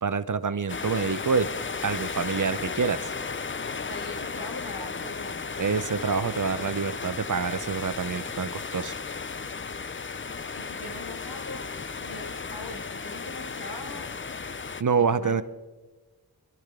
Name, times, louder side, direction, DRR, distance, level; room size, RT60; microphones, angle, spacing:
voice 1, 0.0-1.5 1.8-3.1 5.6-9.0 14.8-15.4, right 5 dB, 55° right, 13 dB, 0.7 m, -27 dB
sound 1, 0.7-14.8, left 5 dB, 35° left, 0.5 m, -35 dB
voice 2, 3.8-5.6 10.5-11.7 11.9-14.1 15.0-15.4, left 2 dB, 65° left, 3 dB, 2.1 m, -41 dB
24.5 x 12.0 x 3.7 m, 1.3 s
wide cardioid pair, 65°, 37 cm